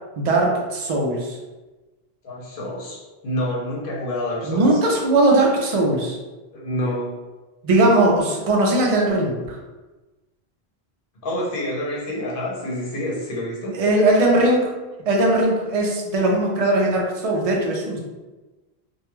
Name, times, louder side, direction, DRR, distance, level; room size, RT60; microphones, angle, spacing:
voice 1, 0.2-1.4 4.5-6.2 7.6-9.6 13.7-14.7 15.1-18.0, right 2 dB, 50° right, -1 dB, 0.5 m, -19 dB
voice 2, 2.2-3.0 3.2-4.8 6.5-7.1 11.2-13.8, equal, 60° left, -4 dB, 0.8 m, -27 dB
2.2 x 2.2 x 3.0 m, 1.2 s
omnidirectional pair, 1.1 m